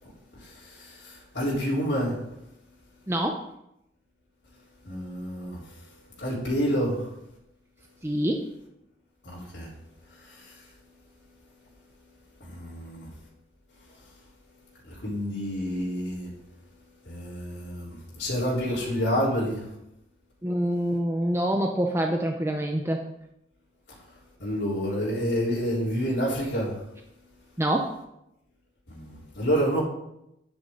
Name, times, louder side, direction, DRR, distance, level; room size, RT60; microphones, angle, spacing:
voice 1, 0.4-2.2 4.8-5.6 6.2-7.1 9.2-9.7 10.2-10.6 12.4-13.1 14.8-16.3 17.0-19.7 24.4-26.8 28.9-29.8, equal, 85° left, 3.7 m, -29 dB
voice 2, 3.1-3.4 8.0-8.4 20.4-23.0 27.6-27.9, right 1 dB, 15° right, 0.6 m, -26 dB
9.6 x 8.4 x 3.8 m
head